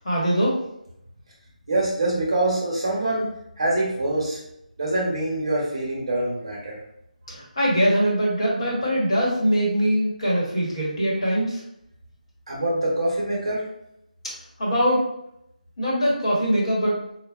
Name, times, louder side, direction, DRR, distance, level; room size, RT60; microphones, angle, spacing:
voice 1, 0.0-0.6 7.3-11.6 14.6-15.1 15.8-17.0, equal, 40° left, -5 dB, 1.1 m, -22 dB
voice 2, 1.7-3.3 3.6-4.4 4.8-6.8 12.5-13.7, right 1 dB, 35° right, -4 dB, 0.8 m, -24 dB
4.4 x 2.1 x 2.2 m, 0.80 s
figure-of-eight pair, 180°, 5 cm